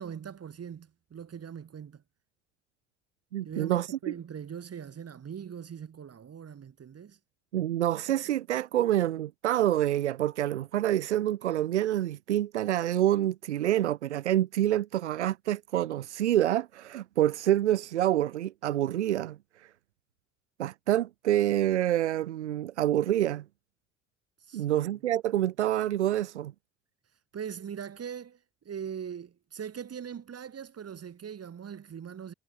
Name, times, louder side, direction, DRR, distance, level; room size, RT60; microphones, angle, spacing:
voice 1, 0.0-2.0 3.4-7.2 24.4-24.9 27.3-32.3, right 8 dB, 45° right, 5.9 m, -41 dB
voice 2, 3.3-4.0 7.5-19.7 20.6-23.4 24.5-26.5, right 12 dB, 85° right, 1.7 m, -27 dB
figure-of-eight pair, 50°, 34 cm